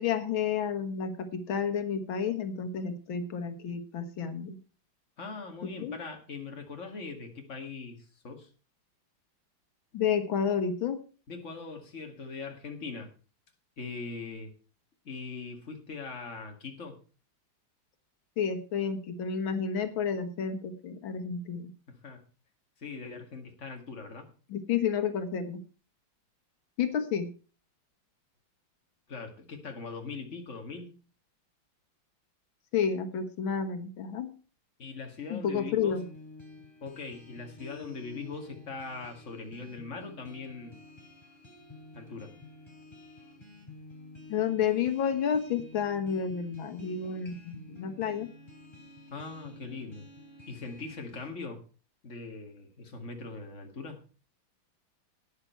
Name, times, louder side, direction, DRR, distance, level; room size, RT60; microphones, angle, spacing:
voice 1, 0.0-4.6 5.6-6.0 9.9-11.0 18.4-21.7 24.5-25.6 26.8-27.3 32.7-34.3 35.3-36.1 44.3-48.3, left 7 dB, 90° left, 9 dB, 2.0 m, -30 dB
voice 2, 5.2-8.5 11.3-13.1 13.8-14.5 15.0-17.0 21.9-22.2 22.8-24.3 29.1-31.0 34.8-36.0 36.8-40.8 41.9-42.3 49.1-50.1 50.5-51.6 52.0-54.0, left 4 dB, 40° left, 4 dB, 2.3 m, -41 dB
sound 1, 35.9-51.3, left 2 dB, 15° left, 3.3 m, -51 dB
12.5 x 9.7 x 4.5 m, 0.35 s
omnidirectional pair, 2.1 m